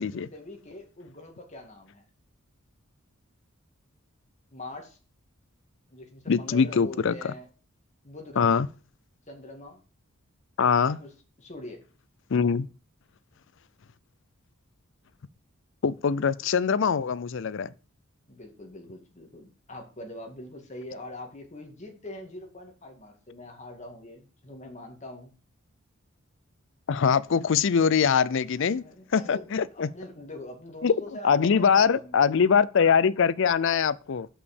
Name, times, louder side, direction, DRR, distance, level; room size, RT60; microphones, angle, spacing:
voice 1, 0.0-2.1 4.5-5.0 5.9-7.5 8.0-8.6 9.3-9.8 10.8-11.8 18.3-25.3 28.7-32.4, left 1 dB, 35° left, 2.1 m, -43 dB
voice 2, 6.3-7.3 8.4-8.7 10.6-11.0 12.3-12.7 15.8-17.7 26.9-28.8 29.1-29.9 30.8-30.9 31.2-34.3, left 6 dB, 60° left, 0.5 m, -23 dB
6.4 x 5.7 x 7.1 m
head